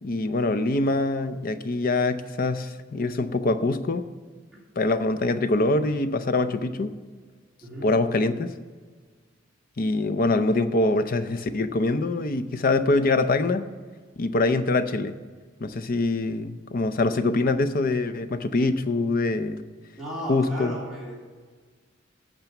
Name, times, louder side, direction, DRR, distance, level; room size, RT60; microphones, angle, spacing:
voice 1, 0.0-4.1 4.8-6.9 7.8-8.5 9.8-13.7 14.2-15.2 15.6-19.6 20.3-20.8, left 2 dB, 50° left, 11 dB, 0.6 m, -24 dB
voice 2, 20.0-21.2, right 1 dB, ahead, -7 dB, 3.4 m, -35 dB
8.9 x 6.8 x 7.0 m, 1.5 s
head